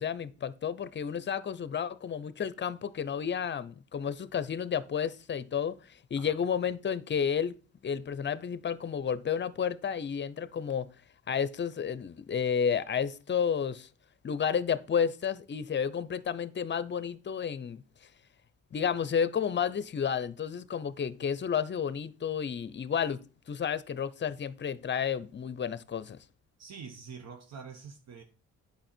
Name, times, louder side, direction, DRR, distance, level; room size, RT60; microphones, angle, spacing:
voice 1, 0.0-5.8 6.1-7.6 7.8-10.9 11.3-13.9 14.2-17.8 18.7-23.2 23.5-26.2, left 7 dB, 35° left, 0.7 m, -31 dB
voice 2, 26.6-28.2, right 6 dB, 60° right, 1.3 m, -45 dB
8.8 x 5.6 x 4.4 m
cardioid pair, 90°, 30 cm